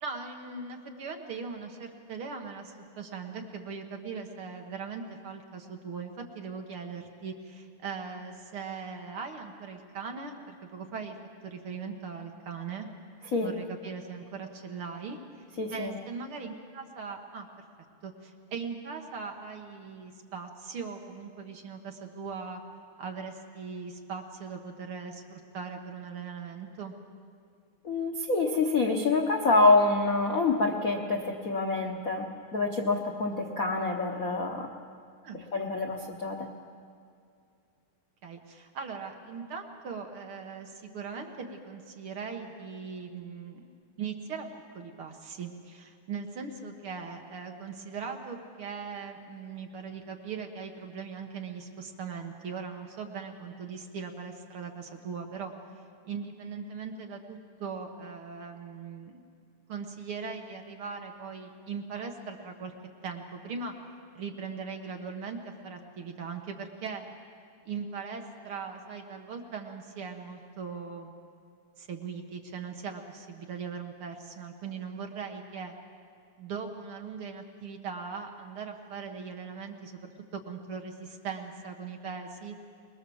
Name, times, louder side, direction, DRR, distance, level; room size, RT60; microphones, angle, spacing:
voice 1, 0.0-11.2 11.4-12.9 13.4-15.2 15.7-17.5 18.0-22.6 23.0-26.9 35.2-35.7 38.2-43.7 44.0-44.5 44.7-55.5 56.1-59.2 59.7-62.7 63.0-63.7 64.2-67.0 67.7-71.1 71.8-75.7 76.4-82.6, right 5 dB, 50° right, 3 dB, 1.9 m, -39 dB
voice 2, 15.6-15.9 27.8-34.7 35.3-36.5, left 3 dB, 85° left, 1 dB, 0.7 m, -26 dB
24.0 x 20.5 x 7.1 m, 2.3 s
omnidirectional pair, 3.5 m